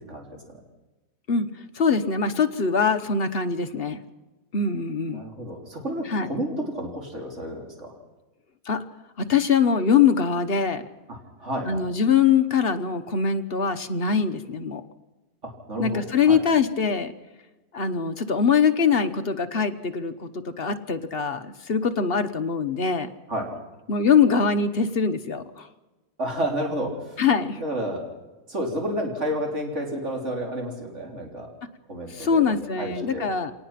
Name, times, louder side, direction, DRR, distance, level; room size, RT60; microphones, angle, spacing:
voice 1, 1.3-4.0 4.5-5.2 6.1-6.3 8.7-8.8 9.2-10.8 11.6-14.8 15.8-17.1 17.7-23.1 23.9-25.7 27.2-27.6 32.1-33.5, left 6 dB, 45° left, 8 dB, 1.2 m, -23 dB
voice 2, 5.1-7.9 11.1-11.8 15.4-16.4 23.3-23.5 26.2-27.2 27.6-28.0 28.5-31.5 31.9-33.3, equal, 50° right, 1 dB, 4.0 m, -31 dB
26.0 x 19.0 x 5.9 m, 1.1 s
omnidirectional pair, 1.6 m